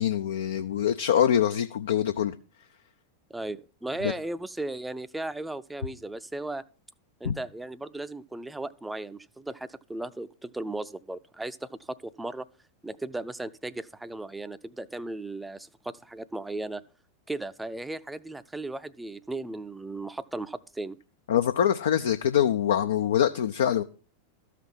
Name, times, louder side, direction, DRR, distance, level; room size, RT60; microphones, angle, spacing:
voice 1, 0.0-2.3 4.0-4.1 7.2-7.3 21.3-23.8, left 9 dB, 60° left, 0.5 m, -24 dB
voice 2, 3.3-6.6 7.2-12.5 12.8-16.8 17.3-21.0, right 2 dB, 5° right, 0.5 m, -36 dB
13.5 x 5.8 x 5.5 m
figure-of-eight pair, 90°, 0 cm